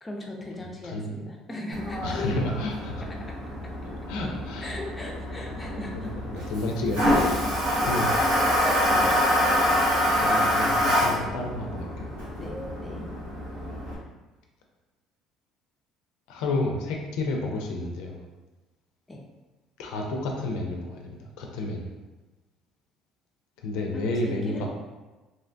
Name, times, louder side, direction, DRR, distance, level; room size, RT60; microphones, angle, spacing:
voice 1, 0.0-2.2 3.0-3.9 4.6-6.2 7.8-8.1 8.8-9.7 12.4-13.1 19.1-19.2 23.9-24.7, left 1 dB, 20° left, 0 dB, 0.4 m, -39 dB
voice 2, 0.8-1.2 2.0-3.0 4.1-4.7 5.3-7.2 7.9-8.1 8.9-9.0 10.2-12.1 16.3-18.2 19.8-21.9 23.6-24.7, left 2 dB, 85° left, 1 dB, 0.4 m, -31 dB
Toilet flush, 1.7-14.0, equal, 85° right, 0.9 m, -26 dB
2.7 x 2.1 x 2.5 m, 1.2 s
cardioid pair, 110°, 0 cm